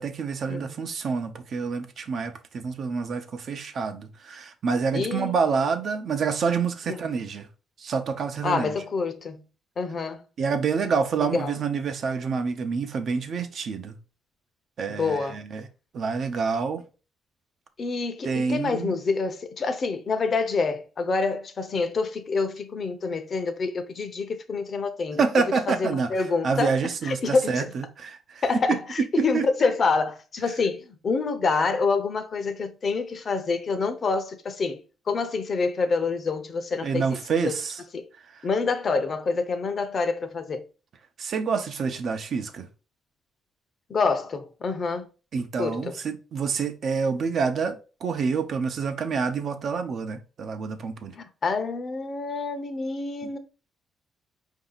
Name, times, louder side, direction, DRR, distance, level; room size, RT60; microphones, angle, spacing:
voice 1, 0.0-7.5 7.8-8.7 10.4-14.0 14.8-15.7 15.9-16.8 18.2-18.9 25.2-26.1 26.4-28.4 28.7-28.8 29.2-29.4 36.8-37.8 38.2-38.5 41.2-42.7 45.3-51.2 53.2-53.3, right 5 dB, 60° right, 0.7 m, -27 dB
voice 2, 4.9-5.3 6.9-7.0 8.4-9.4 9.8-10.2 11.3-11.6 14.9-15.4 17.8-27.7 28.4-34.8 35.1-37.2 37.4-37.6 37.9-38.1 38.4-40.7 43.9-45.1 45.6-46.0 51.1-53.4, left 4 dB, 45° left, 0.7 m, -27 dB
4.7 x 2.7 x 3.9 m
cardioid pair, 90°, 0 cm